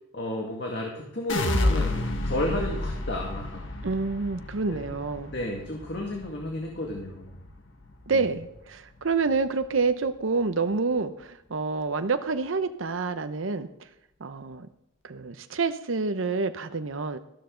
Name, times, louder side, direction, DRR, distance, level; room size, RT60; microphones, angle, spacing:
voice 1, 0.1-3.6 4.7-4.8 5.3-7.4 8.1-8.2, left 1 dB, 60° left, 0 dB, 2.0 m, -32 dB
sound 1, 1.3-7.5 7.8-8.4, left 2 dB, 80° left, 1.6 m, -30 dB
voice 2, 3.8-5.3 8.1-13.7 14.2-14.7 15.0-17.2, right 4 dB, 85° right, 9 dB, 0.8 m, -28 dB
14.0 x 12.5 x 3.9 m, 0.82 s
head